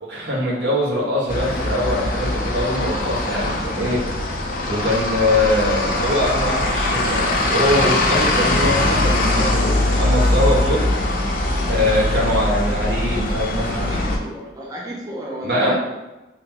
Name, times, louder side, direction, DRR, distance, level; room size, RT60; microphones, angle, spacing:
voice 1, 0.1-4.0 4.6-10.9 11.7-14.0 15.4-15.7, left 1 dB, 75° right, -6 dB, 1.2 m, -22 dB
sound 1, 1.3-14.2, left 2 dB, 50° left, 0.5 m, -21 dB
voice 2, 11.6-11.9 14.0-15.7, right 1 dB, 20° right, -3 dB, 0.4 m, -33 dB
2.9 x 2.8 x 3.7 m, 1.0 s
head